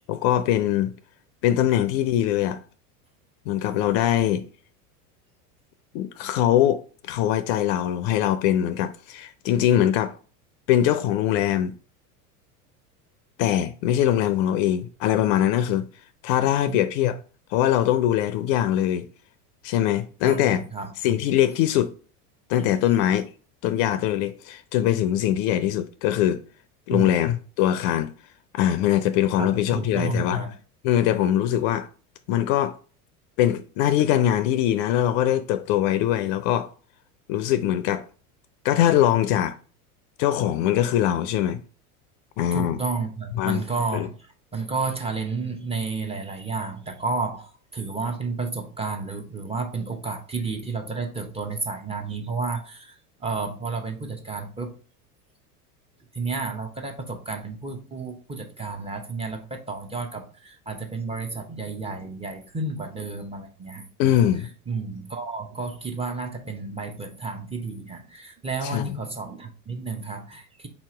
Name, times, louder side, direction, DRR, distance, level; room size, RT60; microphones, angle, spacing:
voice 1, 0.1-0.9 1.4-2.6 3.5-4.5 5.9-6.8 7.1-10.1 10.7-11.7 13.4-15.8 16.2-17.2 17.5-19.1 19.6-20.6 21.0-21.9 22.5-23.3 23.6-26.4 26.9-28.1 28.5-30.5 30.8-31.9 32.3-32.8 33.4-36.7 37.3-38.0 38.6-39.6 40.2-41.6 42.4-42.8 43.4-43.6 43.9-44.1 64.0-64.5 68.6-68.8, left 11 dB, 55° left, 0.5 m, -22 dB
voice 2, 20.2-20.9 26.9-27.1 29.4-30.5 42.5-54.8 56.1-63.9 64.2-64.3 64.7-70.7, right 4 dB, 15° right, 0.7 m, -31 dB
4.2 x 2.9 x 3.7 m
hypercardioid pair, 95°, 46 cm